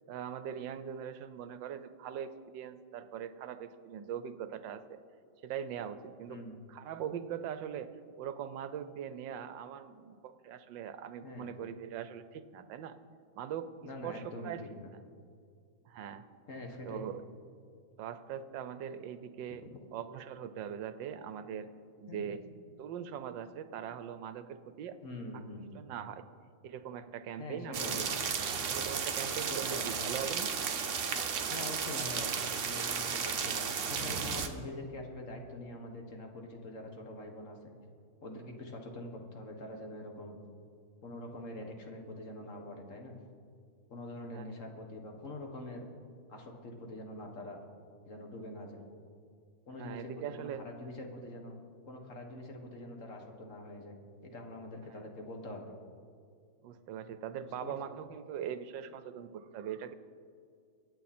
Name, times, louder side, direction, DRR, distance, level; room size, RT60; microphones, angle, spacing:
voice 1, 0.1-5.0 5.4-6.4 6.7-7.9 8.2-12.9 13.3-14.6 15.9-16.2 16.9-17.2 18.0-19.7 19.9-21.7 22.0-22.4 22.8-25.0 25.7-26.2 26.6-28.1 28.7-30.5 44.3-44.5 49.8-50.6 56.6-59.9, right 9 dB, 70° right, 12 dB, 1.3 m, -41 dB
voice 2, 13.8-14.9 16.5-17.1 22.1-22.3 25.0-25.8 27.4-28.0 29.5-30.3 31.5-37.7 38.2-40.4 41.0-43.2 43.9-45.9 46.3-47.6 48.1-48.8 49.7-51.6 51.9-55.7 57.6-57.7, left 1 dB, 40° left, 2 dB, 1.8 m, -44 dB
sound 1, 27.7-34.5, right 6 dB, 50° right, 1.0 m, -34 dB
23.5 x 8.9 x 4.3 m, 2.3 s
omnidirectional pair, 2.2 m